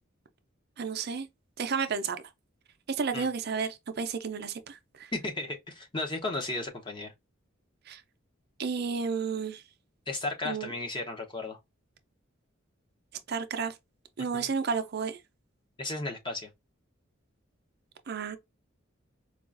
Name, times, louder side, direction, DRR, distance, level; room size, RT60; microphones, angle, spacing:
voice 1, 0.8-1.3 1.6-2.2 2.9-5.1 7.9-8.0 8.6-9.6 10.4-10.7 13.3-13.7 14.2-15.2 18.1-18.4, right 5 dB, 50° right, 0.5 m, -32 dB
voice 2, 5.1-7.1 10.1-11.6 14.3-14.5 15.8-16.5, left 2 dB, 25° left, 0.8 m, -34 dB
4.6 x 2.4 x 2.5 m
head